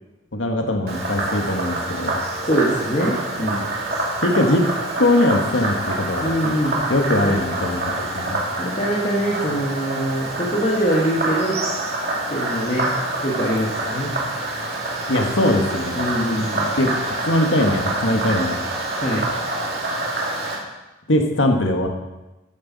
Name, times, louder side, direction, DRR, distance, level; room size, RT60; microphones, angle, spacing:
voice 1, 0.3-2.2 4.2-4.6 5.0-6.3 6.9-8.4 15.1-16.0 16.8-16.9 17.3-18.6 21.1-21.9, left 1 dB, 90° left, 3 dB, 1.4 m, -20 dB
Frog, 0.9-20.6, right 2 dB, 55° right, 2.5 m, -26 dB
voice 2, 2.4-3.7 6.2-6.9 7.2-7.4 8.6-11.6 12.3-12.9 13.2-14.1 16.0-16.7 19.0-19.3, equal, 35° left, -4 dB, 1.6 m, -23 dB
13.5 x 9.1 x 4.1 m, 1.0 s
head